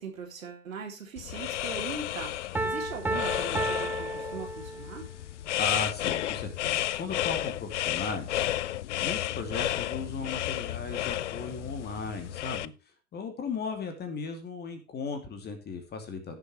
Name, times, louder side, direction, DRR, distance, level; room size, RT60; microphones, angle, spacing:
voice 1, 0.0-5.1, right 5 dB, 70° right, 2 dB, 3.6 m, -40 dB
sound 1, 1.2-12.7, left 13 dB, 55° left, 0.6 m, -32 dB
Piano, 2.5-5.1, right 2 dB, 5° right, 0.7 m, -32 dB
voice 2, 5.6-8.5 9.0-12.7 13.1-16.4, left 4 dB, 25° left, 6 dB, 2.6 m, -36 dB
16.0 x 7.3 x 3.1 m, 0.31 s
figure-of-eight pair, 90°, 42 cm